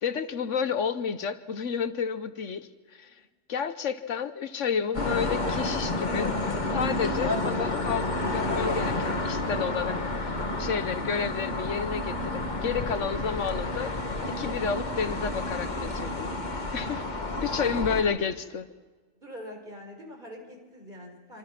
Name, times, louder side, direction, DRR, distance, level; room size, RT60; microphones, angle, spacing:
voice 1, 0.0-3.1 3.5-6.4 6.7-10.0 10.2-13.9 14.3-16.3 16.7-17.2 17.4-18.6, left 6 dB, 75° left, 12 dB, 1.3 m, -31 dB
sound 1, 4.9-18.0, left 2 dB, 35° left, 1.9 m, -30 dB
voice 2, 19.2-21.4, equal, 40° right, 3 dB, 4.8 m, -44 dB
26.5 x 26.0 x 6.0 m, 1.4 s
omnidirectional pair, 1.3 m